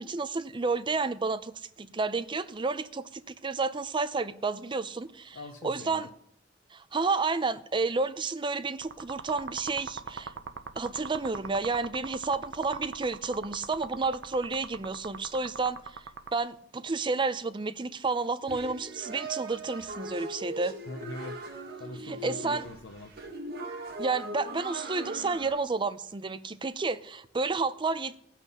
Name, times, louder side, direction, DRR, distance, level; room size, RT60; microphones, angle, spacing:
voice 1, 0.0-5.4 5.6-6.1 6.7-10.3 10.8-15.8 16.3-20.7 22.0-22.7 24.0-28.2, right 4 dB, 25° right, 0.5 m, -31 dB
voice 2, 5.3-6.1 20.9-23.1, left 2 dB, 85° left, 0.8 m, -43 dB
sound 1, 8.8-16.3, right 5 dB, 70° right, 0.8 m, -41 dB
sound 2, 18.5-25.5, right 2 dB, 55° right, 1.8 m, -39 dB
16.0 x 5.9 x 5.6 m
head